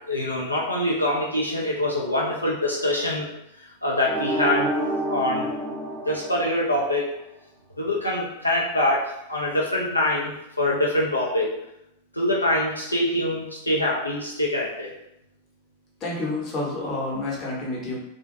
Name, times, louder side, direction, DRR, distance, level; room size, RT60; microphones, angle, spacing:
voice 1, 0.1-3.3 3.6-4.7 5.1-5.5 6.1-7.1 7.8-11.5 12.1-14.9, left 1 dB, 85° left, -4 dB, 0.4 m, -24 dB
sound 1, 4.1-7.0, right 1 dB, 20° right, 0.5 m, -28 dB
voice 2, 16.0-17.9, left 2 dB, 30° left, -4 dB, 0.8 m, -29 dB
2.4 x 2.1 x 2.5 m, 0.82 s
figure-of-eight pair, 90°, 0 cm